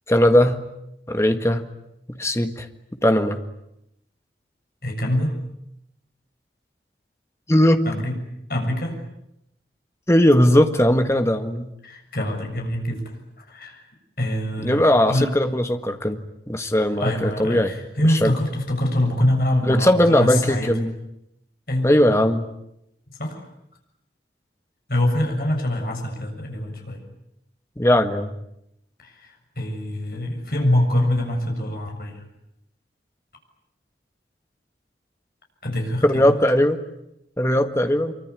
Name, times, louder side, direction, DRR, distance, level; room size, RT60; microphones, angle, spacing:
voice 1, 0.1-0.6 1.1-1.6 2.1-2.7 3.0-3.4 7.5-7.8 10.1-11.7 14.6-17.7 18.1-18.3 19.6-21.0 21.8-22.5 27.8-28.3 36.0-36.8 37.4-38.1, left 1 dB, 15° left, 7 dB, 1.7 m, -19 dB
voice 2, 4.8-5.4 7.8-8.1 8.5-9.0 11.8-13.8 14.2-15.3 17.0-20.7 21.7-21.9 23.2-23.4 24.9-27.0 29.0-32.2 35.6-36.3, left 1 dB, 55° left, 2 dB, 7.1 m, -24 dB
25.5 x 24.5 x 9.7 m, 0.80 s
head